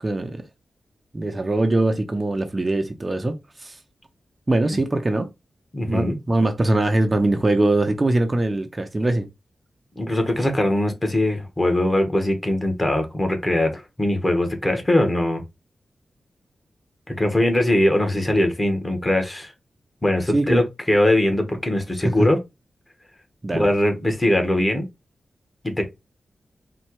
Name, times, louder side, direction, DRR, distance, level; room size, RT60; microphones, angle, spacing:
voice 1, 0.0-0.4 1.1-3.8 4.5-5.3 5.9-9.3 20.3-20.6 22.0-22.1 23.4-23.7, right 2 dB, 25° right, 0.6 m, -22 dB
voice 2, 5.7-6.2 10.0-15.4 17.1-19.5 20.0-22.4 23.5-24.9 25.6-25.9, left 1 dB, 20° left, 1.2 m, -21 dB
4.3 x 2.3 x 4.5 m
wide cardioid pair, 100°, 0 cm